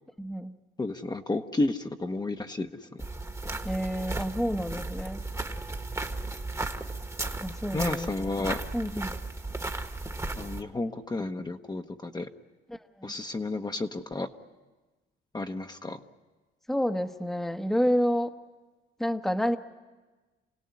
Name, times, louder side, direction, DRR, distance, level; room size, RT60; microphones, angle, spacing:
voice 1, 0.2-0.5 3.6-5.2 7.4-8.1 8.7-9.1 12.7-13.1 16.7-18.3 19.0-19.6, equal, ahead, 6 dB, 1.0 m, -29 dB
voice 2, 0.8-3.0 7.7-8.6 10.4-12.3 13.0-14.3 15.3-16.0, left 2 dB, 20° left, 5 dB, 1.0 m, -32 dB
sound 1, 3.0-10.6, right 2 dB, 15° right, 1.4 m, -35 dB
28.0 x 17.5 x 9.6 m, 1.2 s
cardioid pair, 90°, 20 cm